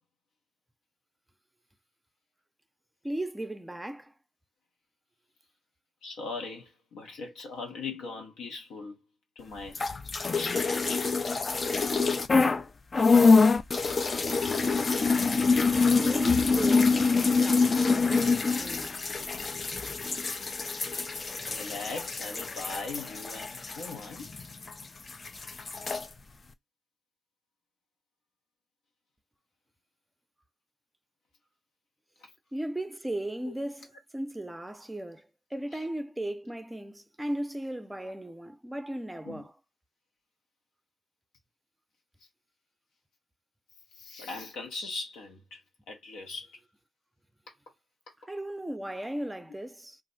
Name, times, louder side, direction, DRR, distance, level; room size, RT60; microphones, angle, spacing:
voice 1, 3.0-4.1 15.7-18.9 32.5-35.2 35.5-39.5 48.3-50.0, right 1 dB, 15° right, 0.5 m, -36 dB
voice 2, 6.0-9.0 9.4-9.8 10.3-11.0 17.5-17.6 20.9-21.1 21.5-24.3 33.4-33.5 39.2-39.4 44.0-45.6 45.9-46.6, left 3 dB, 75° left, 0.9 m, -40 dB
sound 1, 9.7-12.6 12.9-24.8 25.1-26.0, left 4 dB, 45° left, 0.4 m, -25 dB
2.4 x 2.0 x 3.8 m
hypercardioid pair, 45°, 0 cm